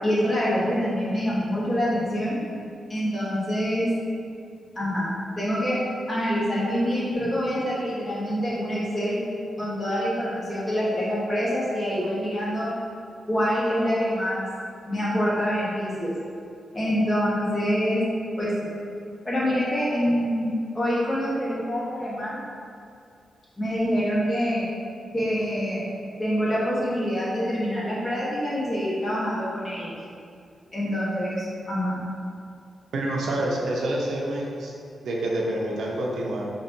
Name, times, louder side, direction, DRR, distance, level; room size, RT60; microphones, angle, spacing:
voice 1, 0.0-2.4 2.9-3.9 4.7-5.8 6.1-9.2 9.6-12.7 13.3-14.4 14.9-16.1 16.7-18.0 18.4-18.7 19.2-22.4 23.6-24.7 25.1-25.8 26.2-30.0 30.7-32.0, equal, 25° left, -8 dB, 1.3 m, -26 dB
voice 2, 32.9-34.7 35.0-36.5, right 1 dB, 80° right, -2 dB, 0.7 m, -27 dB
4.4 x 3.0 x 3.9 m, 2.4 s
wide cardioid pair, 145°, 0 cm